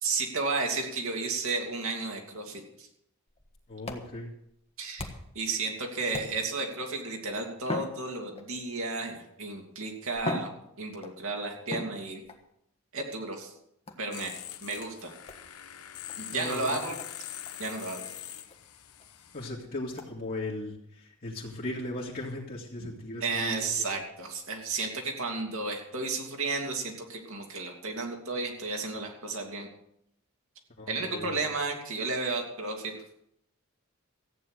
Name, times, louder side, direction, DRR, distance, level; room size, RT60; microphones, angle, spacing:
voice 1, 0.0-2.9 4.8-5.1 5.3-10.5 10.8-12.2 12.9-13.5 14.0-14.3 14.6-15.1 16.2-16.9 17.6-18.0 23.2-29.7 30.9-32.9, right 3 dB, 65° right, 2 dB, 2.9 m, -33 dB
sound 1, 3.3-5.5 6.1-6.7 7.6-8.7 9.6-9.7 10.1-11.2 11.7-12.4 13.9-14.2 15.3-15.5 16.1-16.2 16.6-16.7 17.0-17.2 17.5-17.6 18.0-18.1 18.5-18.6 19.0-19.1 20.0-20.1, left 2 dB, 25° left, 1.5 m, -39 dB
voice 2, 3.7-4.3 16.3-17.0 19.3-23.7 30.8-31.4, left 1 dB, 45° left, -5 dB, 2.2 m, -37 dB
sound 2, 14.1-19.5, left 11 dB, 85° left, 1.1 m, -43 dB
14.5 x 9.4 x 6.5 m, 0.74 s
head